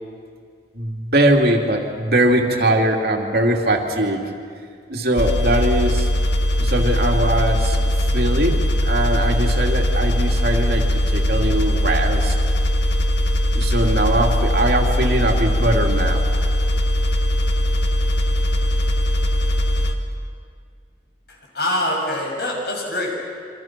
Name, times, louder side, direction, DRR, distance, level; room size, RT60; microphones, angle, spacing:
voice 1, 0.7-4.2 4.9-6.1 6.6-12.4 13.5-16.2, right 1 dB, 60° right, 1 dB, 2.7 m, -21 dB
sound 1, 5.2-19.9, left 1 dB, 80° left, 1.9 m, -20 dB
voice 2, 21.3-23.2, left 1 dB, 65° left, -1 dB, 6.5 m, -24 dB
27.5 x 25.5 x 6.0 m, 2.1 s
head